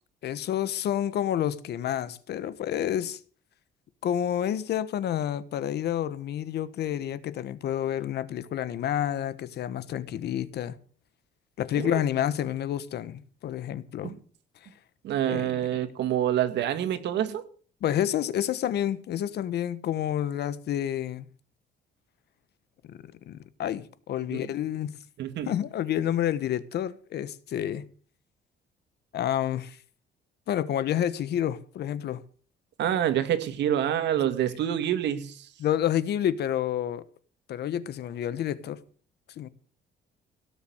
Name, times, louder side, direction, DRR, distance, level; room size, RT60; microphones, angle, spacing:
voice 1, 0.2-3.2 4.0-10.8 11.6-14.1 15.3-15.5 17.8-21.3 22.9-23.0 23.3-24.9 25.5-27.8 29.1-29.8 30.5-32.2 35.6-37.0 37.5-38.8 39.4-39.5, left 10 dB, 65° left, 1.2 m, -29 dB
voice 2, 15.0-17.4 24.3-24.4 25.2-25.5 32.8-35.5, right 10 dB, 75° right, 2.1 m, -27 dB
17.5 x 6.8 x 7.9 m
cardioid pair, 130°, 18 cm